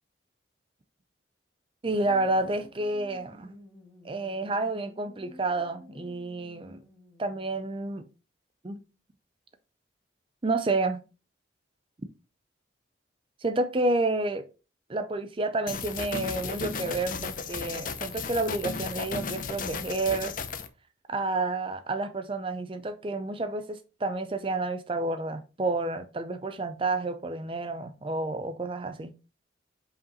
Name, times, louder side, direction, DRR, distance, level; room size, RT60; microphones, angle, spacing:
voice 1, 1.8-3.5 4.0-6.8 7.2-8.0 8.6-8.8 10.4-11.0 13.4-14.4 14.9-20.3 21.1-29.1, right 2 dB, 25° right, 0.5 m, -30 dB
sound 1, 1.9-7.8, left 1 dB, ahead, 2.1 m, -52 dB
sound 2, 15.7-20.7, left 5 dB, 45° left, 0.6 m, -35 dB
5.6 x 5.0 x 4.0 m
head